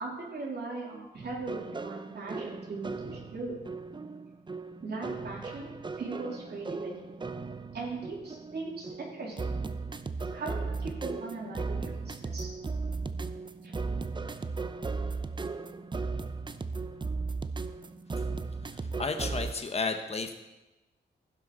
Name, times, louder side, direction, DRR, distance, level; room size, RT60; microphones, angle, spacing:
voice 1, 0.0-3.5 4.8-7.2 7.7-9.6 10.3-12.5 13.6-13.7, right 3 dB, 60° right, -3 dB, 3.5 m, -39 dB
sound 1, 1.2-19.5, right 4 dB, 25° right, 0.6 m, -36 dB
voice 2, 18.7-20.3, left 4 dB, 35° left, 6 dB, 1.2 m, -33 dB
15.5 x 6.0 x 5.6 m, 1.1 s
cardioid pair, 85°, 19 cm